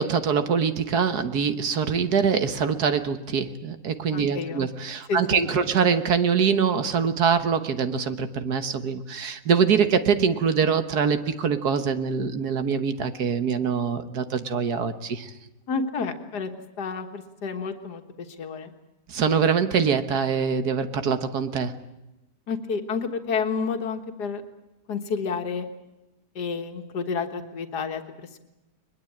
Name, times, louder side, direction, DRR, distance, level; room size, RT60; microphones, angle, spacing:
voice 1, 0.0-15.3 19.1-21.7, right 6 dB, 70° right, 10 dB, 1.8 m, -24 dB
voice 2, 4.1-4.7 5.1-5.7 15.7-16.5 16.8-18.0 18.4-18.7 22.5-24.4 24.9-25.7 26.4-28.4, left 5 dB, 75° left, 6 dB, 2.2 m, -30 dB
22.0 x 21.5 x 8.7 m, 1.0 s
omnidirectional pair, 1.7 m